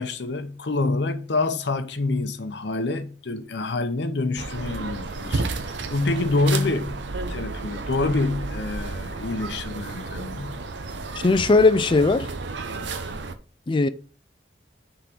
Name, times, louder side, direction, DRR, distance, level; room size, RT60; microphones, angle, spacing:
voice 1, 0.0-7.0 7.3-10.5, left 2 dB, 70° left, 0.8 m, -27 dB
sound 1, 4.4-13.3, right 3 dB, 75° right, 0.7 m, -32 dB
voice 2, 11.2-12.3 13.7-13.9, left 3 dB, 25° left, 0.4 m, -18 dB
5.8 x 3.7 x 6.1 m
head